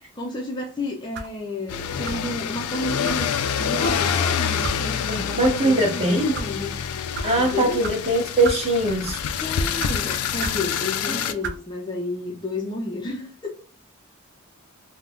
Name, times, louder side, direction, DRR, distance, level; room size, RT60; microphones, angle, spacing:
voice 1, 0.2-6.7 7.4-7.8 9.4-13.6, left 2 dB, 20° left, 0.4 m, -31 dB
sound 1, 1.1-1.4 2.0-2.3 3.0-3.2 3.8-4.0 4.6-4.8 5.4-5.6 6.2-6.5 7.1-7.3 7.8-8.0 8.4-8.7 9.0-9.3 9.8-9.9 10.4-10.6 11.4-11.6, right 4 dB, 50° right, 0.4 m, -32 dB
sound 2, 1.7-11.3, left 7 dB, 90° left, 0.3 m, -27 dB
voice 2, 5.1-6.3 7.2-9.2 11.1-11.3, right 1 dB, 30° right, 1.0 m, -22 dB
3.4 x 2.1 x 2.3 m
head